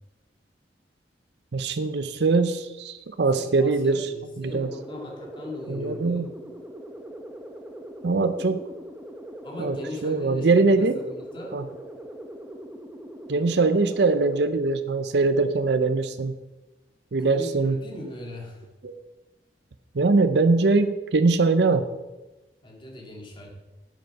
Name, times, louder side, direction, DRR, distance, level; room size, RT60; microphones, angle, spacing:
voice 1, 1.5-4.1 4.4-4.7 5.7-6.3 8.0-8.6 9.6-9.8 10.0-11.0 11.5-11.6 13.3-16.3 17.1-17.8 18.8-18.9 19.9-21.9, right 3 dB, 65° right, 10 dB, 0.6 m, -22 dB
voice 2, 3.3-6.3 9.4-11.6 17.2-18.7 22.6-23.5, left 2 dB, 30° left, 0 dB, 2.2 m, -39 dB
sound 1, 4.5-14.5, right 1 dB, 10° right, 0.8 m, -41 dB
10.0 x 7.8 x 4.6 m, 1.1 s
head